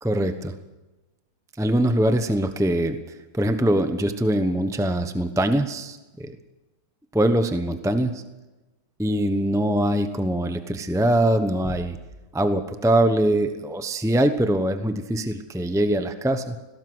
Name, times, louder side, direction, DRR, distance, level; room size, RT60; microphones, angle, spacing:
voice 1, 0.0-0.5 1.6-3.0 3.3-6.4 7.1-8.2 9.0-12.0 12.3-16.6, right 1 dB, 5° right, 9 dB, 0.4 m, -23 dB
19.5 x 17.5 x 7.9 m, 1.1 s
omnidirectional pair, 2.2 m